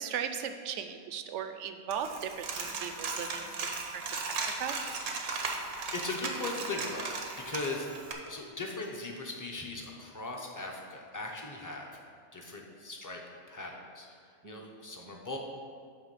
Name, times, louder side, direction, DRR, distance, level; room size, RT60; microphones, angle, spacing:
voice 1, 0.0-4.8 14.4-14.6, right 8 dB, 65° right, 8 dB, 0.8 m, -38 dB
Coin (dropping), 1.9-8.1, right 4 dB, 85° right, 1.3 m, -37 dB
voice 2, 5.9-7.1 7.4-7.9 8.3-11.9 12.3-13.2 13.5-14.1 14.4-15.4, left 3 dB, 15° left, 0 dB, 0.7 m, -39 dB
9.6 x 3.5 x 6.8 m, 2.2 s
omnidirectional pair, 1.5 m